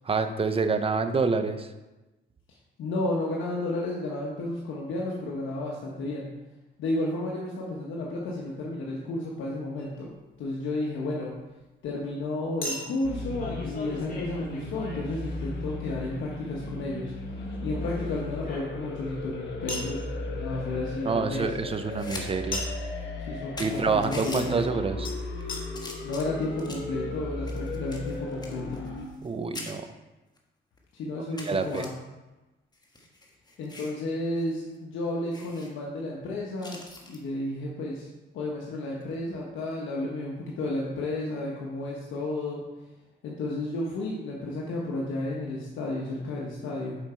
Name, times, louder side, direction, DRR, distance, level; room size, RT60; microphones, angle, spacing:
voice 1, 0.0-1.7 21.0-22.6 23.6-25.1 29.2-29.9 31.2-31.9, right 4 dB, 30° right, 9 dB, 0.6 m, -27 dB
voice 2, 2.8-6.3 6.8-10.1 10.4-11.3 11.8-17.1 17.6-21.5 23.3-24.7 26.0-28.8 30.9-31.9 33.6-38.1 38.3-42.6 43.2-47.0, left 2 dB, 80° left, -3 dB, 1.2 m, -32 dB
Chink clink, 9.8-9.9 12.6-15.8 17.4-19.0 19.7-20.0 22.5-22.9 25.1-25.2 25.5-25.6 26.3-26.4 26.5-26.6, left 1 dB, 45° left, 1.9 m, -38 dB
sound 1, 13.0-29.1, left 2 dB, 60° left, 1.5 m, -36 dB
sound 2, 21.8-22.3 22.6-22.7 23.2-23.3 23.6-24.5 25.2-25.4 25.7-26.9 27.5-29.3 29.5-29.7 30.4-30.5 30.8-30.9 31.4-31.9 32.7-34.0 34.4-34.5 34.8-34.9 35.3-35.7 36.6-37.2 38.9-39.1, left 2 dB, 20° left, 1.3 m, -42 dB
7.5 x 5.0 x 4.4 m, 1.1 s
cardioid pair, 90°, 20 cm